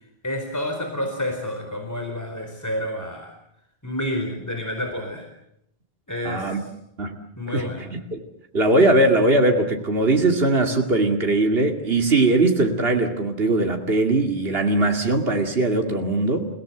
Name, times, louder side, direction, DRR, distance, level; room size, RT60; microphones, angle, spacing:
voice 1, 0.2-3.3 3.8-5.3 6.1-6.5 7.4-7.9, left 1 dB, 15° left, 4 dB, 4.5 m, -29 dB
voice 2, 6.2-6.6 7.0-7.2 7.5-8.2 8.5-16.5, right 2 dB, 70° right, 3 dB, 2.7 m, -20 dB
29.0 x 18.5 x 7.9 m, 0.77 s
omnidirectional pair, 1.1 m